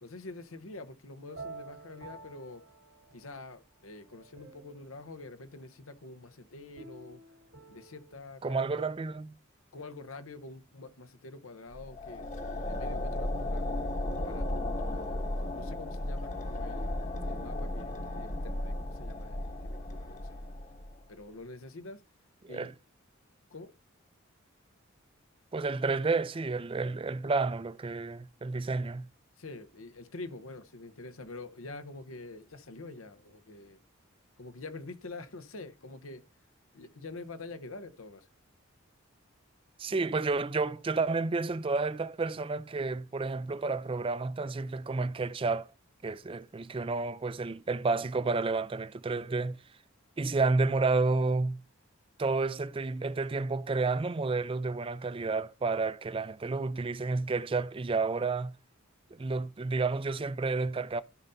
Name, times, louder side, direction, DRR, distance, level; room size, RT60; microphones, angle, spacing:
voice 1, 0.0-2.6 3.1-7.2 7.7-8.9 9.7-13.7 14.2-16.9 17.3-20.4 21.1-22.0 22.5-22.7 23.5-23.7 29.4-33.8 34.4-36.2 36.7-38.3, left 2 dB, 80° left, 0.9 m, -46 dB
sound 1, 1.3-3.4 3.9-5.0 6.8-8.2, right 3 dB, 80° right, 2.8 m, -49 dB
voice 2, 8.4-9.4 22.4-22.7 25.5-29.1 39.8-45.7 46.0-49.6 50.2-51.6 52.2-58.5 59.1-61.0, right 3 dB, 25° right, 0.4 m, -30 dB
sound 2, 11.7-21.0, left 1 dB, 35° left, 1.1 m, -35 dB
15.0 x 5.5 x 2.7 m
head